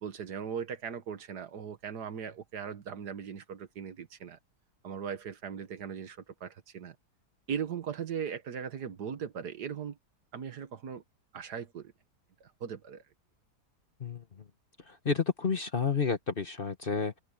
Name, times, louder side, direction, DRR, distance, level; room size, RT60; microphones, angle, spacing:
voice 1, 0.0-4.4 4.8-7.0 7.5-10.0 10.3-11.0 11.3-11.9 12.4-13.0, right 7 dB, 70° right, 1.8 m, -39 dB
voice 2, 14.9-17.2, left 5 dB, 35° left, 1.2 m, -30 dB
omnidirectional pair, 1.8 m